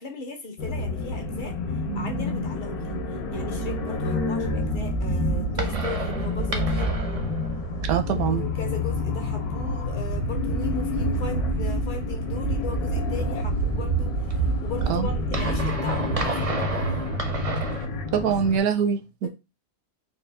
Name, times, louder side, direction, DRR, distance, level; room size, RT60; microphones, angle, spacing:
voice 1, 0.0-1.5 1.9-3.0 3.3-6.9 8.1-17.0 19.2-19.3, left 4 dB, 45° left, 0.7 m, -37 dB
sound 1, 0.6-18.6, left 3 dB, 75° left, 1.2 m, -29 dB
sound 2, 4.5-17.9, right 5 dB, 60° right, 0.3 m, -29 dB
voice 2, 7.9-8.4 14.9-15.1 18.1-19.3, right 7 dB, 75° right, 1.1 m, -23 dB
4.1 x 2.3 x 3.3 m
omnidirectional pair, 1.6 m